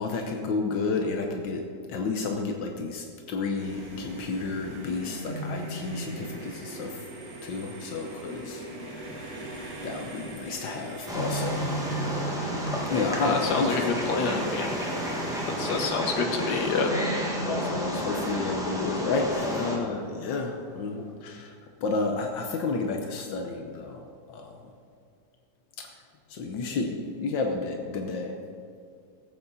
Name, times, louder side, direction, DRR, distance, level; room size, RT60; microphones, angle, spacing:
voice 1, 0.0-1.6 1.9-7.0 7.4-9.1 9.8-11.7 12.1-12.3 12.9-13.9 17.4-21.6 21.8-24.0 24.3-24.6 26.3-28.3, left 3 dB, 85° left, 2 dB, 1.6 m, -31 dB
sound 1, 3.6-21.1, right 1 dB, 25° left, 3.9 m, -40 dB
sound 2, 3.6-15.8, right 1 dB, 50° right, 2.1 m, -41 dB
Wild animals, 11.1-19.8, equal, ahead, 1.4 m, -32 dB
voice 2, 13.2-14.7 15.6-16.9, left 4 dB, 60° left, 2 dB, 1.8 m, -27 dB
18.5 x 8.1 x 4.0 m, 2.3 s
omnidirectional pair, 2.0 m